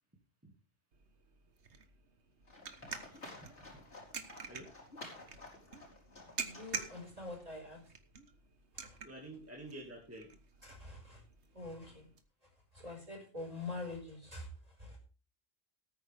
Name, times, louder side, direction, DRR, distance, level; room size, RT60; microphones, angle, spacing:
sound 1, 0.9-12.2, right 5 dB, 75° right, 1.7 m, -48 dB
Livestock farm animals working animals, 2.5-7.4, left 2 dB, 85° left, 4.7 m, -53 dB
voice 1, 3.3-3.7 4.5-4.7 9.0-10.3, right 1 dB, 10° right, -2 dB, 2.3 m, -49 dB
voice 2, 6.2-7.8 8.7-9.0 10.6-11.2 11.5-12.1 12.7-15.0, left 2 dB, 35° right, 1 dB, 5.1 m, -45 dB
18.0 x 9.3 x 3.6 m, 0.35 s
omnidirectional pair, 1.1 m